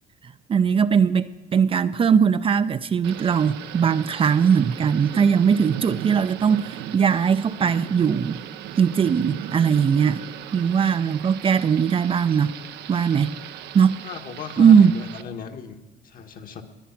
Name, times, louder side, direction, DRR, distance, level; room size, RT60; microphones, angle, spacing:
voice 1, 0.5-8.4 8.8-10.2 10.5-12.5 12.9-13.3 13.7-14.0 14.6-14.9, right 7 dB, 35° right, 0.5 m, -19 dB
Thunder / Rain, 3.0-15.2, right 12 dB, 80° right, 0.7 m, -38 dB
voice 2, 14.0-15.8 16.0-16.6, left 7 dB, 55° left, 1.5 m, -36 dB
20.5 x 9.4 x 5.9 m
cardioid pair, 110°, 17 cm